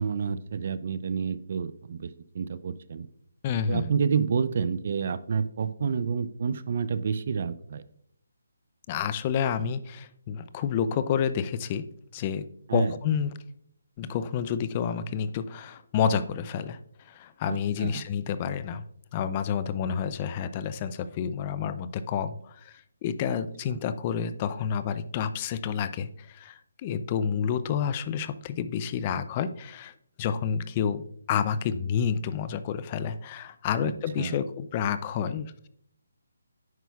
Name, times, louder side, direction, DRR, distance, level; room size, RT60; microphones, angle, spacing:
voice 1, 0.0-3.1 3.7-7.8 12.7-12.9 17.5-18.0 23.7-23.8 33.8-34.4, right 6 dB, 50° right, 15 dB, 0.4 m, -29 dB
voice 2, 3.4-3.9 8.9-11.9 12.1-13.3 14.0-18.8 19.1-35.7, left 7 dB, 30° left, 13 dB, 0.3 m, -29 dB
9.3 x 5.8 x 2.3 m, 0.70 s
figure-of-eight pair, 155°, 0 cm